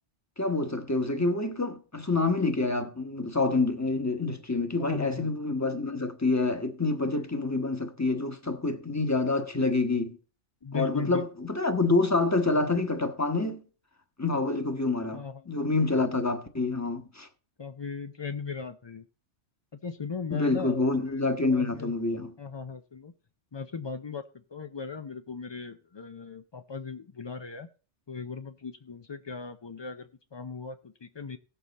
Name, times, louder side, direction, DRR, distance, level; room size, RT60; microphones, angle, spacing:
voice 1, 0.4-10.2 10.7-13.6 14.2-17.3 20.3-22.3, left 3 dB, 15° left, 1.1 m, -27 dB
voice 2, 4.8-5.3 10.6-11.2 15.1-15.9 17.6-19.0 19.8-21.2 21.5-21.9 22.4-23.1 23.5-24.2 24.5-27.7 28.1-31.4, left 5 dB, 40° left, 0.4 m, -38 dB
16.5 x 7.0 x 4.1 m
omnidirectional pair, 1.2 m